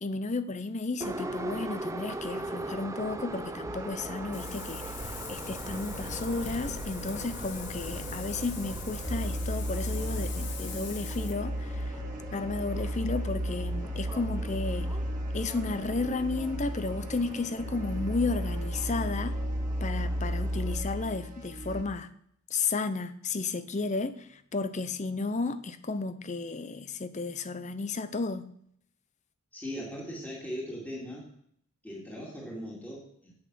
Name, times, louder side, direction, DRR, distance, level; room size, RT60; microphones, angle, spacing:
voice 1, 0.0-4.9 5.3-12.0 12.3-14.9 15.3-19.4 19.8-22.1 22.5-28.5, left 3 dB, 30° left, 0.6 m, -33 dB
Subway metro underground, 1.0-20.8, right 1 dB, 15° right, 0.5 m, -42 dB
sound 1, 3.6-21.8, equal, 35° right, 1.7 m, -35 dB
Wind, 4.3-11.3, left 5 dB, 50° left, 1.3 m, -42 dB
voice 2, 29.5-31.3 31.8-33.3, equal, 10° left, 2.2 m, -39 dB
8.6 x 8.4 x 6.1 m
head